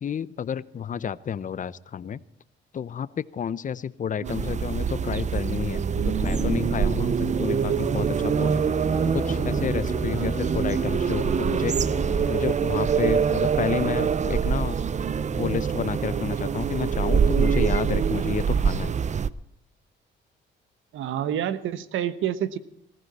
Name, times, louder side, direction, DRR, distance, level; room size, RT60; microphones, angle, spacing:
voice 1, 0.0-2.2 2.7-8.6 9.0-11.8 12.3-14.8 15.3-18.9, left 8 dB, 40° left, 18 dB, 0.7 m, -30 dB
sound 1, 4.3-19.3, right 7 dB, 35° right, 0.6 m, -25 dB
sound 2, 6.2-12.5, left 2 dB, 10° left, 1.5 m, -34 dB
Bowed string instrument, 8.6-12.9, left 7 dB, 60° left, 2.9 m, -44 dB
voice 2, 10.1-10.4 20.9-22.6, right 10 dB, 80° right, 14 dB, 1.1 m, -29 dB
19.0 x 15.0 x 4.2 m, 0.72 s
cardioid pair, 90°, 20 cm